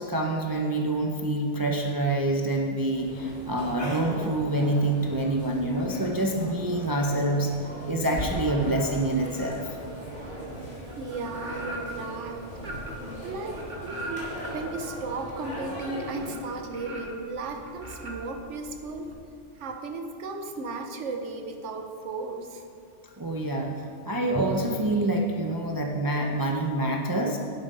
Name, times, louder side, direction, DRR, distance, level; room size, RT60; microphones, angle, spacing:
voice 1, 0.0-7.5 7.9-9.8 23.0-27.4, right 1 dB, 25° right, 1 dB, 0.6 m, -26 dB
sound 1, 2.9-16.3, right 1 dB, 45° left, 3.4 m, -39 dB
sound 2, 8.1-8.9 9.3-19.1, right 1 dB, 40° right, 1.3 m, -40 dB
voice 2, 11.0-12.5 13.2-19.1 19.5-22.6, right 3 dB, 80° right, 5 dB, 1.2 m, -35 dB
10.0 x 8.1 x 5.4 m, 2.4 s
omnidirectional pair, 1.2 m